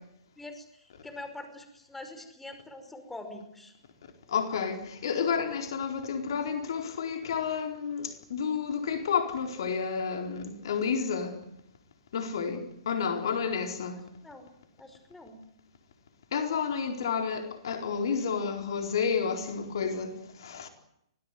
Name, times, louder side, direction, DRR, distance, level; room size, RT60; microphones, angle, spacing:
voice 1, 0.4-3.7 14.2-14.5 14.8-15.4, left 2 dB, 5° left, 5.5 m, -44 dB
voice 2, 4.3-11.4 12.1-14.0 16.3-20.7, left 6 dB, 65° left, 4.3 m, -30 dB
24.5 x 18.5 x 9.6 m
hypercardioid pair, 125°, 3 cm